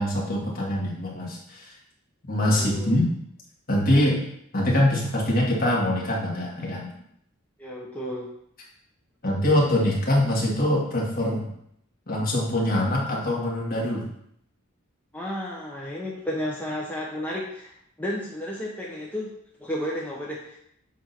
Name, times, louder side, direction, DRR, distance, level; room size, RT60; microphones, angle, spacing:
voice 1, 0.0-1.8 2.3-3.0 3.7-4.2 4.5-6.9 9.2-11.5 12.1-14.1, left 1 dB, 45° left, -3 dB, 1.8 m, -24 dB
voice 2, 2.5-3.0 7.6-8.3 15.1-17.7 18.0-19.3 19.6-20.6, left 1 dB, 10° left, -4 dB, 0.7 m, -32 dB
7.3 x 2.7 x 5.8 m, 0.72 s
head